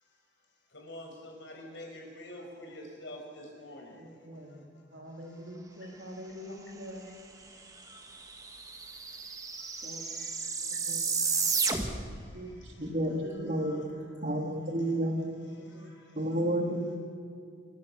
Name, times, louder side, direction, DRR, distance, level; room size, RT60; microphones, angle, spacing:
voice 1, 0.7-4.1 4.7-5.0 5.7-6.6 7.0-10.8 11.2-12.6 13.2-14.3 14.8-14.9 15.4-16.4, left 1 dB, 70° left, 1 dB, 5.9 m, -50 dB
voice 2, 4.0-7.2 9.8-10.0 10.7-11.0 12.3-12.9 13.2-13.5 15.6-15.9, equal, 70° right, 1 dB, 3.5 m, -45 dB
sound 1, 7.7-7.8 8.0-12.2, right 5 dB, 20° right, 1.4 m, -32 dB
voice 3, 12.8-13.8 14.2-15.2 16.1-17.0, right 1 dB, 45° right, 2 dB, 2.8 m, -30 dB
29.0 x 13.5 x 6.9 m, 2.3 s
head